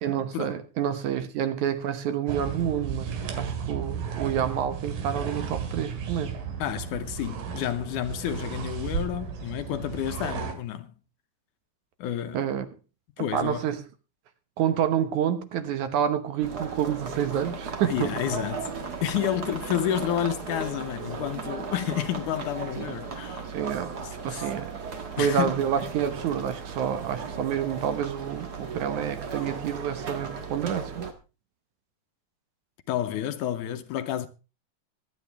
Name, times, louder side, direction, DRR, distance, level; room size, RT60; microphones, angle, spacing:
voice 1, 0.0-6.4 12.3-12.7 13.2-13.8 14.6-18.1 22.8-22.9 23.5-24.0 24.2-24.7 25.1-31.1, right 9 dB, 70° right, 2.3 m, -28 dB
sound 1, 2.3-10.5, right 6 dB, 85° right, 3.6 m, -34 dB
voice 2, 6.6-10.9 12.0-12.5 13.2-13.6 17.8-23.5 24.0-24.5 25.2-25.5 32.9-34.3, left 11 dB, 75° left, 2.2 m, -30 dB
sound 2, 16.4-31.1, right 5 dB, 45° right, 1.4 m, -36 dB
23.5 x 9.0 x 3.4 m
omnidirectional pair, 3.9 m